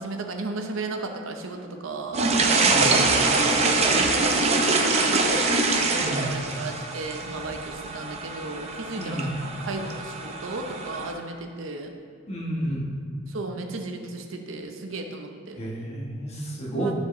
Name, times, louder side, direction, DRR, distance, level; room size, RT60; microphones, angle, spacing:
voice 1, 0.0-11.9 13.3-15.6 16.7-16.9, right 2 dB, 75° right, 4 dB, 0.7 m, -35 dB
sound 1, 2.1-11.1, right 3 dB, 35° right, 0.6 m, -24 dB
voice 2, 2.6-3.0 6.0-6.4 9.0-9.4 12.3-13.0 15.6-16.9, right 1 dB, 35° left, -2 dB, 1.2 m, -31 dB
12.0 x 4.7 x 3.1 m, 2.1 s
head